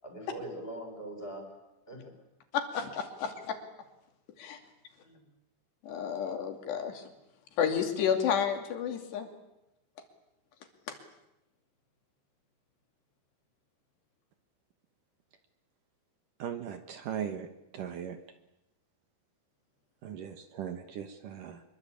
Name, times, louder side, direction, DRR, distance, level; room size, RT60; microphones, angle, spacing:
voice 1, 0.0-1.6 1.9-2.1 5.0-5.2, right 1 dB, 10° left, 3 dB, 6.8 m, -42 dB
voice 2, 2.5-3.5 4.4-4.6 5.8-7.1 7.6-9.3 10.9-11.0, left 8 dB, 70° left, 5 dB, 4.7 m, -31 dB
voice 3, 16.4-17.5 17.7-18.2 20.0-21.6, right 8 dB, 65° right, 8 dB, 2.3 m, -38 dB
25.0 x 23.0 x 8.5 m, 0.89 s
omnidirectional pair, 5.2 m